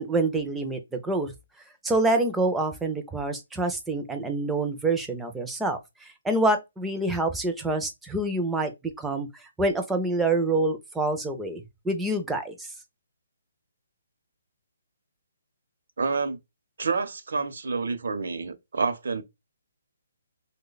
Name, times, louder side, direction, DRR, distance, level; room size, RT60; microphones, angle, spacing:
voice 1, 0.0-1.3 1.8-8.7 9.0-9.3 9.6-12.7, right 2 dB, 5° right, 0.4 m, -26 dB
voice 2, 16.0-16.4 16.8-19.2, right 4 dB, 65° right, 0.6 m, -28 dB
3.1 x 2.1 x 3.8 m
hypercardioid pair, 175°, 0 cm